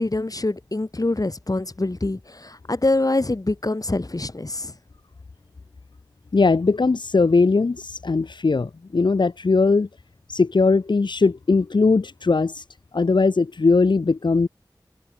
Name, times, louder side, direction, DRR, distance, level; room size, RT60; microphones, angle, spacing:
voice 1, 0.0-4.7, left 2 dB, 50° left, 4.2 m, -25 dB
voice 2, 6.3-9.9 10.3-12.6 12.9-14.5, left 4 dB, 85° left, 0.8 m, -19 dB
wide cardioid pair, 45°, 8 cm